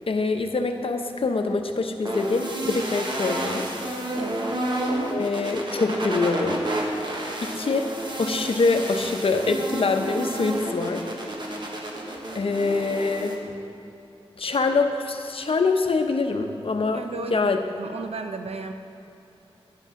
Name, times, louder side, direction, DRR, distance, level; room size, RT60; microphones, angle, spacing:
voice 1, 0.1-3.6 5.1-6.6 7.4-7.9 8.2-11.1 12.3-13.5 14.4-17.0 17.3-17.6, left 3 dB, 60° left, 5 dB, 0.8 m, -24 dB
sound 1, 2.0-13.4, right 1 dB, 45° right, 1.3 m, -30 dB
voice 2, 4.1-4.4 16.9-17.5 17.8-18.7, right 4 dB, 75° right, 6 dB, 0.7 m, -34 dB
11.0 x 10.0 x 3.7 m, 3.0 s
wide cardioid pair, 90°, 11 cm